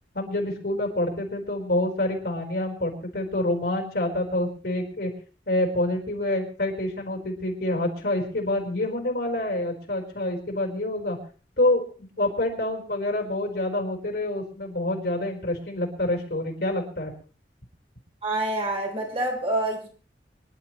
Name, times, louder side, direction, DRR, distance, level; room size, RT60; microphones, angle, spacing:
voice 1, 0.1-5.1 5.5-11.2 11.6-17.1, left 1 dB, 65° left, 0 dB, 4.3 m, -27 dB
voice 2, 18.2-19.9, right 1 dB, 35° right, 0 dB, 3.8 m, -27 dB
25.5 x 11.5 x 3.1 m, 0.39 s
head